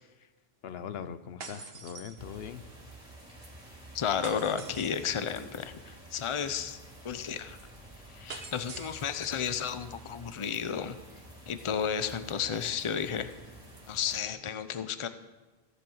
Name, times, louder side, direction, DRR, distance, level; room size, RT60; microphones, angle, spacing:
voice 1, 0.6-2.6, left 8 dB, 80° left, 13 dB, 0.9 m, -41 dB
sound 1, 1.4-2.7 4.2-5.2 8.3-9.5, right 4 dB, 70° right, 1.4 m, -45 dB
sound 2, 2.2-14.2, right 1 dB, 35° right, 3.4 m, -50 dB
voice 2, 3.9-6.8 7.0-7.6 8.1-11.0 11.5-13.3 13.9-15.1, left 7 dB, 35° left, 11 dB, 0.6 m, -32 dB
14.5 x 7.6 x 7.2 m, 1.2 s
omnidirectional pair, 1.0 m